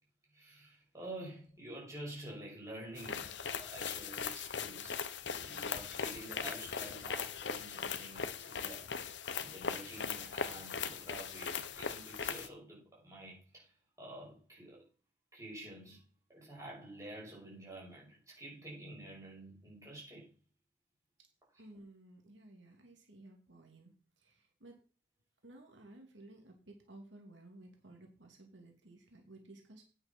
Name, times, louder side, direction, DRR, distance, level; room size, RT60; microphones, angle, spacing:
voice 1, 0.3-5.0 5.4-8.9 9.4-13.7 14.0-14.9 15.3-16.0 16.3-20.3 21.5-21.6, right 1 dB, 15° right, 6.6 m, -49 dB
sound 1, 3.0-12.5, left 6 dB, 80° left, 0.9 m, -39 dB
voice 2, 21.6-24.8 25.4-29.8, right 2 dB, 90° right, 2.6 m, -56 dB
9.1 x 6.9 x 6.1 m
head